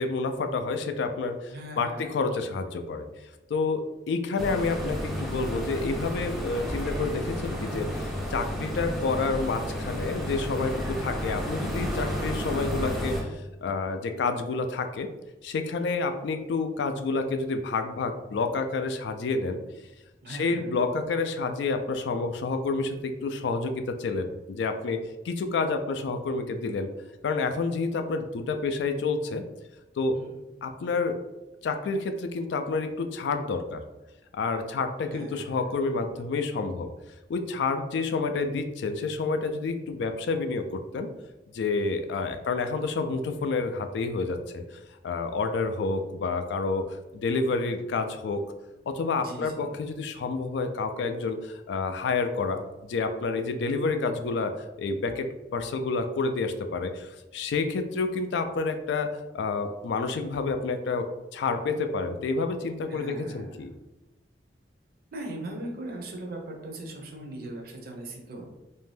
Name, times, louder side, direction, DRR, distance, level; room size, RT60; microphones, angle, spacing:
voice 1, 0.0-15.1 15.4-19.6 20.3-26.9 27.2-29.4 30.0-30.2 30.6-31.2 31.6-33.8 34.3-36.9 37.3-41.1 41.5-48.4 48.9-54.5 54.8-63.7, left 4 dB, 75° left, 7 dB, 0.3 m, -29 dB
voice 2, 1.5-2.3 20.2-20.8 30.1-30.6 35.0-35.7 49.2-49.7 62.9-63.6 65.1-68.5, right 1 dB, 55° right, 2 dB, 0.5 m, -40 dB
sound 1, 4.4-13.2, equal, ahead, 0.4 m, -32 dB
2.5 x 2.1 x 3.2 m, 1.0 s
head